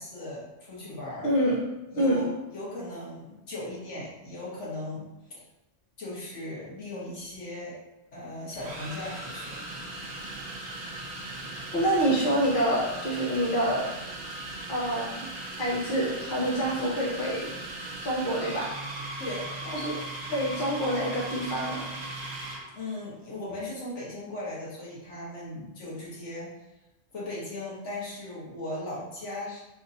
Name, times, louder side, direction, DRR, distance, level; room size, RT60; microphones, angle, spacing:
voice 1, 0.0-1.3 1.9-5.1 6.0-7.7 8.1-9.6 19.2-19.5 22.7-26.5 27.1-29.6, left 2 dB, 80° left, -6 dB, 1.6 m, -38 dB
voice 2, 1.2-1.6 1.9-2.2 11.7-13.9 14.7-15.3 15.6-17.5 18.0-18.7 19.7-19.9 20.3-21.9, right 1 dB, 45° left, -4 dB, 1.0 m, -26 dB
sound 1, 7.3-7.4 8.5-22.7, right 2 dB, 40° right, 0.9 m, -38 dB
3.6 x 2.6 x 4.0 m, 0.99 s
omnidirectional pair, 1.2 m